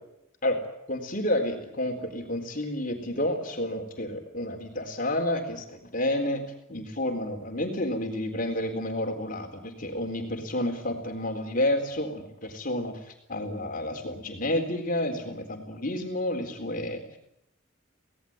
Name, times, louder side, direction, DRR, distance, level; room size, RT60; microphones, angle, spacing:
voice 1, 0.9-6.4 6.7-13.0 13.3-17.0, left 1 dB, 40° left, 3 dB, 4.0 m, -30 dB
25.5 x 18.0 x 8.8 m, 0.85 s
head